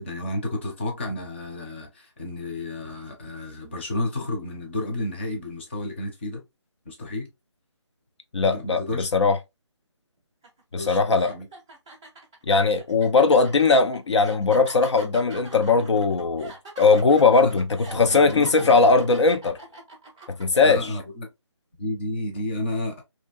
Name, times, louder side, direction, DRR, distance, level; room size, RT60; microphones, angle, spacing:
voice 1, 0.0-6.4 6.9-7.3 8.5-9.1 10.7-11.5 17.4-17.6 17.9-18.9 20.6-21.3 21.8-23.0, left 1 dB, 25° left, 0.7 m, -31 dB
voice 2, 8.3-9.4 10.7-11.3 12.5-19.6 20.4-20.9, left 4 dB, 70° left, 0.5 m, -19 dB
sound 1, 10.4-10.6 11.1-20.4, right 3 dB, 10° right, 0.4 m, -43 dB
2.7 x 2.5 x 2.3 m
figure-of-eight pair, 165°, 15 cm